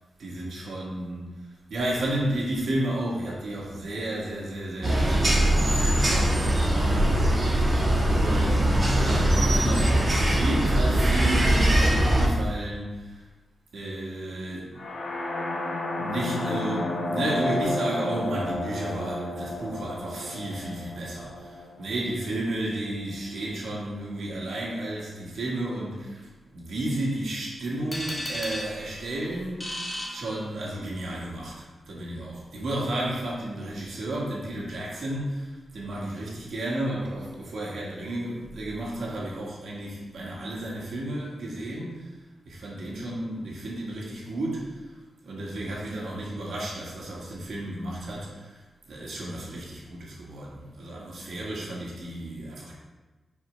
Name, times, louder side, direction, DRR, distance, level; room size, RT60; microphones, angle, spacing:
voice 1, 0.2-5.6 5.9-7.8 8.1-13.2 13.7-14.8 16.0-42.2 42.5-48.6 48.9-52.8, right 1 dB, 70° right, -4 dB, 1.9 m, -32 dB
sound 1, 4.8-12.3, right 1 dB, 30° right, 1.4 m, -21 dB
sound 2, 14.8-22.6, left 1 dB, 50° left, 0.9 m, -32 dB
sound 3, 27.9-30.9, equal, 15° left, 1.2 m, -36 dB
5.3 x 5.0 x 5.2 m, 1.2 s
wide cardioid pair, 155°, 0 cm